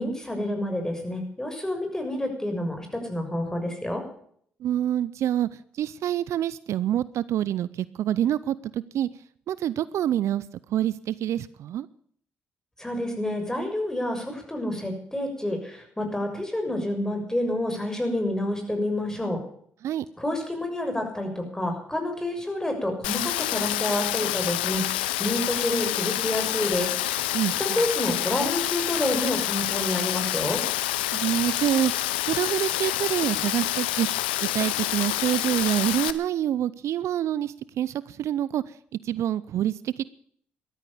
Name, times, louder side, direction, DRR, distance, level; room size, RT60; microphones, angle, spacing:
voice 1, 0.0-4.0 12.8-19.4 20.2-30.6, left 1 dB, 10° left, 4 dB, 6.6 m, -29 dB
voice 2, 4.6-9.1 9.5-11.9 19.8-20.1 27.3-27.8 31.1-34.1 34.4-38.8 39.0-40.0, right 11 dB, 65° right, 19 dB, 0.6 m, -27 dB
Rain, 23.0-36.1, left 15 dB, 90° left, 0.7 m, -27 dB
14.0 x 13.0 x 7.1 m, 0.62 s
hypercardioid pair, 50°, 5 cm